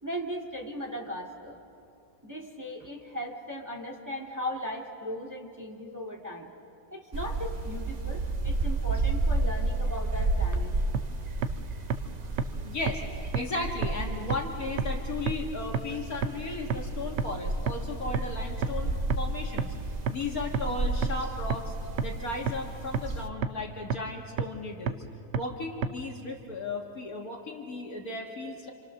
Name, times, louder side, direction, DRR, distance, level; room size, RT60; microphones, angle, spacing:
voice 1, 0.0-1.6 2.2-6.5 6.9-10.7, equal, 10° right, 0 dB, 2.2 m, -37 dB
sound 1, 7.1-23.3, right 2 dB, 45° right, 0.5 m, -32 dB
sound 2, 10.9-11.0 11.4-11.5 11.9-12.0 12.4-12.5 12.9-13.0 13.3-13.4 13.8-13.9 14.3-14.4 14.8-14.9 15.3-15.4 15.7-15.8 16.2-16.3 16.7-16.8 17.2-17.3 17.7-17.8 18.1-18.2 18.6-18.7 19.1-19.2 19.6-19.7 20.1-20.2 20.5-20.6 21.0-21.1 21.5-21.6 22.0-22.1 22.5-22.6 22.9-23.0 23.4-23.5 23.9-24.0 24.4-24.5 24.9-25.0 25.3-25.4 25.8-25.9, right 6 dB, 65° right, 1.3 m, -27 dB
voice 2, 12.6-13.0 13.3-19.7 20.1-21.7 22.0-25.0 25.3-28.7, left 3 dB, 50° left, 1 dB, 2.0 m, -35 dB
28.0 x 27.5 x 6.5 m, 2.6 s
omnidirectional pair, 2.1 m